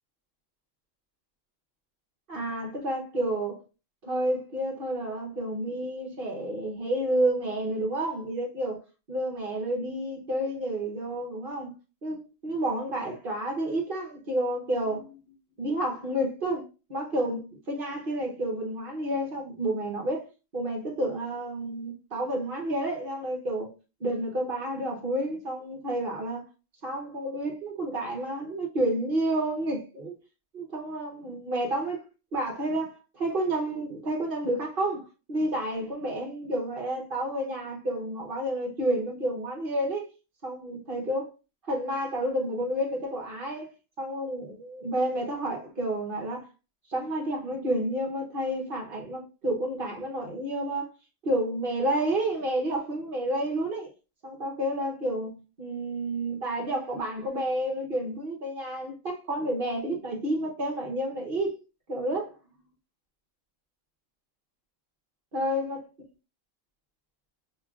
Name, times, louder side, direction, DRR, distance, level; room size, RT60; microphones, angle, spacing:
voice 1, 2.3-3.6 4.0-8.8 9.1-11.7 12.0-15.2 15.6-16.6 16.9-20.3 20.5-23.7 24.0-26.4 26.8-30.1 30.5-32.0 32.3-40.0 40.4-41.3 41.7-43.7 44.0-46.5 46.9-50.9 51.2-53.9 54.2-61.6 61.9-62.4 65.3-65.8, right 1 dB, 45° right, 1.0 m, -30 dB
5.4 x 2.3 x 2.3 m
omnidirectional pair, 1.3 m